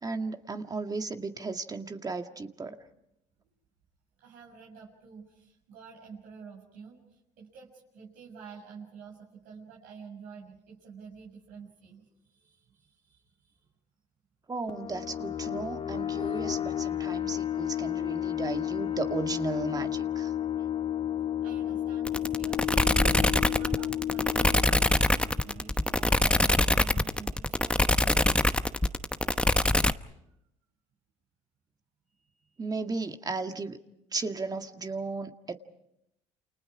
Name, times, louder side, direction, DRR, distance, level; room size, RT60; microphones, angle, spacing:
voice 1, 0.0-2.8 14.5-20.3 32.6-33.8 34.1-35.5, right 3 dB, 25° right, 6 dB, 1.9 m, -35 dB
voice 2, 4.2-13.7 16.1-16.4 21.4-28.5 32.1-33.0, right 6 dB, 70° right, -4 dB, 6.8 m, -49 dB
sound 1, 14.7-26.0, left 11 dB, 40° left, 2.7 m, -32 dB
sound 2, 22.1-29.9, left 1 dB, 5° left, 0.9 m, -23 dB
29.0 x 28.5 x 4.9 m, 0.82 s
supercardioid pair, 80°, 15 cm